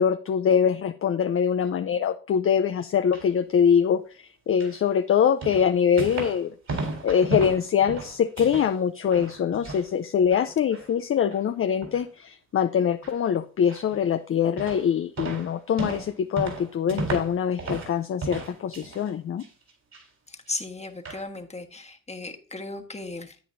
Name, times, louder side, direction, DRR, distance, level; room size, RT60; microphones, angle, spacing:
voice 1, 0.0-19.4, left 8 dB, 40° left, 10 dB, 0.5 m, -24 dB
sound 1, 2.8-3.3 4.6-4.8 5.4-6.4 6.7-8.7 9.0-9.9 10.2-10.9 11.3-11.4 11.8-12.1 13.0-13.2 13.7-14.1 14.6-14.9 15.2-17.9 18.2-19.1 19.4-20.0 20.5-20.6 21.0-21.2, right 3 dB, 60° right, 4.2 m, -34 dB
voice 2, 20.3-23.4, left 3 dB, 20° left, 4 dB, 1.4 m, -36 dB
10.0 x 8.5 x 2.6 m, 0.38 s
supercardioid pair, 55°, 32 cm